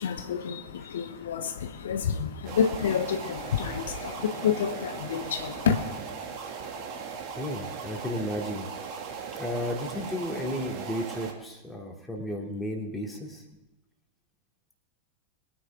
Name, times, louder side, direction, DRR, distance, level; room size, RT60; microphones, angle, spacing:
voice 1, 0.0-6.0, left 7 dB, 60° left, 7 dB, 0.9 m, -29 dB
sound 1, 2.4-11.3, right 5 dB, 40° right, 2.2 m, -38 dB
voice 2, 7.3-8.7 9.4-13.4, equal, 5° left, 0 dB, 2.7 m, -33 dB
22.5 x 9.9 x 3.6 m, 0.95 s
figure-of-eight pair, 90°, 0 cm